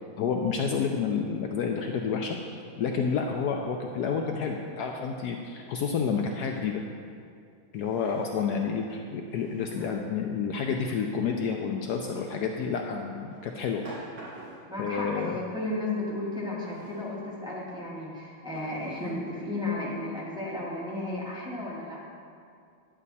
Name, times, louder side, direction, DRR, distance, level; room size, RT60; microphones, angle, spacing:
voice 1, 0.2-6.8 7.7-13.8 14.8-15.4, left 6 dB, 85° left, 2 dB, 0.8 m, -29 dB
Drawer open or close, 7.8-8.6 9.3-10.1 12.0-12.5 13.3-14.8 16.6-17.1 17.8-17.9 18.5-19.1, right 2 dB, 60° right, 3.1 m, -48 dB
voice 2, 14.7-22.0, left 2 dB, ahead, -6 dB, 1.4 m, -34 dB
10.5 x 7.5 x 4.1 m, 2.4 s
omnidirectional pair, 2.3 m